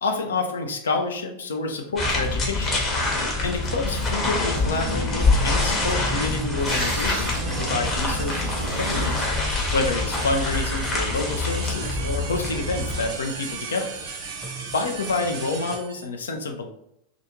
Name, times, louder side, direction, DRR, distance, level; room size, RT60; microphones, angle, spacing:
voice 1, 0.0-2.8 3.4-9.3 9.7-13.9 14.7-16.7, left 3 dB, 65° left, 3 dB, 0.4 m, -28 dB
sound 1, 2.0-13.1, left 2 dB, 25° left, 0.8 m, -25 dB
sound 2, 4.8-15.8, right 2 dB, 20° right, 0.6 m, -38 dB
sound 3, 6.7-16.1, right 7 dB, 60° right, 0.3 m, -37 dB
2.4 x 2.4 x 3.0 m, 0.77 s
figure-of-eight pair, 90°, 0 cm